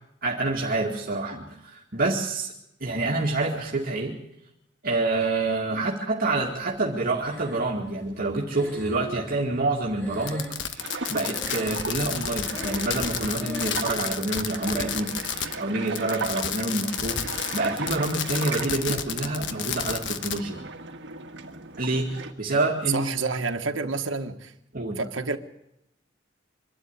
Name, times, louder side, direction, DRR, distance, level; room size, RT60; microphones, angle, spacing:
voice 1, 0.2-2.5 2.8-4.2 4.8-20.6 21.8-23.1 24.7-25.0, right 2 dB, 50° right, 2.3 m, -27 dB
Breathing, 7.2-7.9 8.5-11.0 11.2-12.0 12.4-13.0 13.3-14.0 14.6-15.0, left 1 dB, 10° left, 4.2 m, -40 dB
Fireworks, 10.2-15.6 15.9-20.4, left 8 dB, 65° left, 1.3 m, -31 dB
sound 1, 10.8-22.3, right 3 dB, 65° right, 1.6 m, -37 dB
voice 2, 22.9-24.5 25.0-25.4, right 4 dB, 90° right, 1.3 m, -28 dB
25.0 x 12.5 x 9.6 m
head